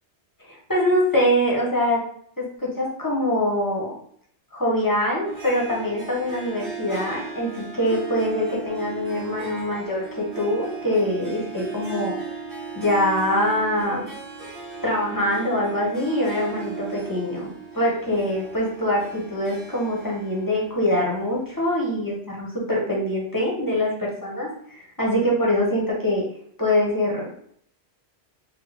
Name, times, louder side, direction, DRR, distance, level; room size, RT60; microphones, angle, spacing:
voice 1, 0.5-2.0 2.4-3.9 4.5-12.1 12.7-14.1 14.8-26.2 26.6-27.2, left 1 dB, 20° left, -4 dB, 0.8 m, -24 dB
Harp, 5.2-21.7, right 5 dB, 55° right, 1.3 m, -37 dB
3.7 x 2.2 x 3.3 m, 0.65 s
omnidirectional pair, 1.1 m